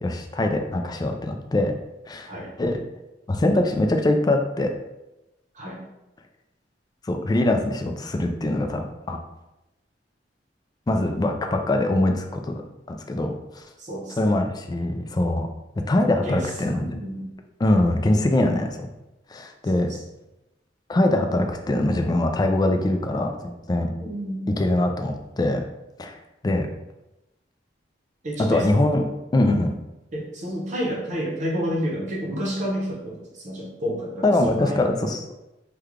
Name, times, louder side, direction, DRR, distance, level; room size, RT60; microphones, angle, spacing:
voice 1, 0.0-1.7 2.1-2.3 2.6-2.8 3.3-4.7 7.0-9.2 10.9-12.5 12.9-13.6 14.2-15.5 15.8-16.9 17.6-18.9 19.3-19.9 20.9-23.9 24.5-25.6 26.0-26.2 26.4-26.7 28.4-29.8 34.2-35.2, left 1 dB, 25° left, 4 dB, 0.3 m, -23 dB
voice 2, 13.8-14.2 16.1-16.5 16.8-17.3 19.7-20.0 24.0-24.5 28.2-28.8 30.1-34.9, equal, 45° right, -3 dB, 0.8 m, -30 dB
3.2 x 2.2 x 3.6 m, 0.96 s
head